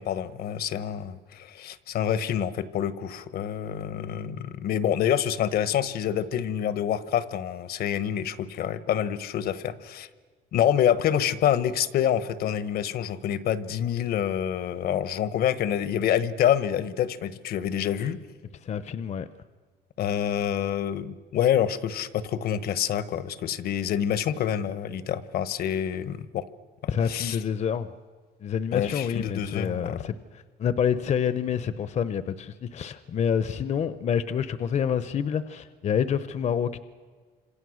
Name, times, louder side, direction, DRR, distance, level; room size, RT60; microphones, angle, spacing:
voice 1, 0.0-10.1 10.5-18.2 20.0-26.4 26.8-27.4 28.7-30.0, left 9 dB, 65° left, 14 dB, 1.2 m, -27 dB
voice 2, 18.6-19.3 26.9-27.9 28.4-36.8, left 7 dB, 45° left, 13 dB, 0.9 m, -27 dB
29.0 x 27.0 x 6.4 m, 1.5 s
cardioid pair, 110°, 17 cm